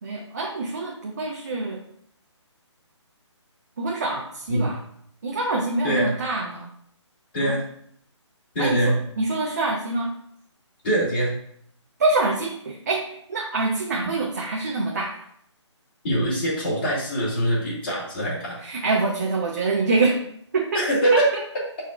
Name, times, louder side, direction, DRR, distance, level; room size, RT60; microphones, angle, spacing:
voice 1, 0.0-1.8 3.8-4.8 5.2-6.7 7.4-7.5 8.6-10.1 12.0-15.2 18.6-20.2 20.5-20.8 21.1-21.2, right 3 dB, 35° right, -2 dB, 0.9 m, -25 dB
voice 2, 8.5-8.9 10.8-11.3 16.0-18.6 20.7-21.3, right 1 dB, 25° left, -10 dB, 3.0 m, -23 dB
12.5 x 4.3 x 2.5 m, 0.67 s
hypercardioid pair, 175°, 16 cm